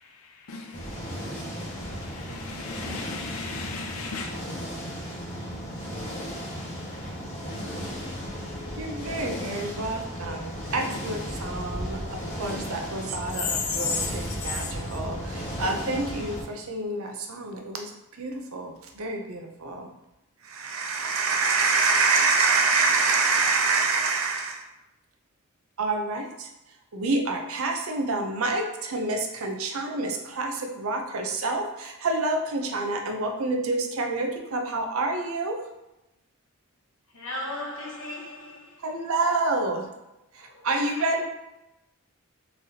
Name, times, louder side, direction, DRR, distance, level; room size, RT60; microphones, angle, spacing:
voice 1, 0.3-4.4 13.3-14.1 14.4-14.7, left 5 dB, 80° left, 0.6 m, -34 dB
sound 1, 0.7-16.4, equal, 35° left, 1.3 m, -35 dB
voice 2, 8.8-17.9 18.2-19.9 20.4-24.7 25.8-26.5 26.9-35.6 38.8-39.9 40.3-41.3, right 3 dB, 75° right, 0.6 m, -27 dB
voice 3, 37.1-38.9 40.4-40.7 40.9-41.1, left 1 dB, 60° left, 0.9 m, -37 dB
3.9 x 3.3 x 2.7 m
head